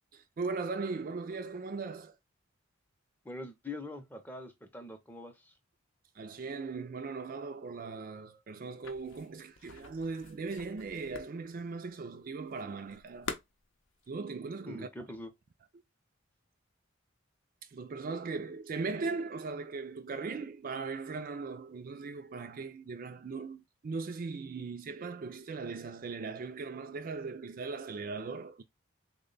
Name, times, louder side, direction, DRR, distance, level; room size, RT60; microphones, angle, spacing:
voice 1, 0.1-2.2 6.2-13.3 14.1-14.9 17.6-28.6, right 4 dB, 45° right, 0.3 m, -39 dB
voice 2, 3.2-5.6 14.6-15.3, left 2 dB, 10° left, 0.6 m, -44 dB
sound 1, 8.8-14.1, left 4 dB, 70° left, 0.7 m, -46 dB
3.5 x 2.2 x 3.8 m
head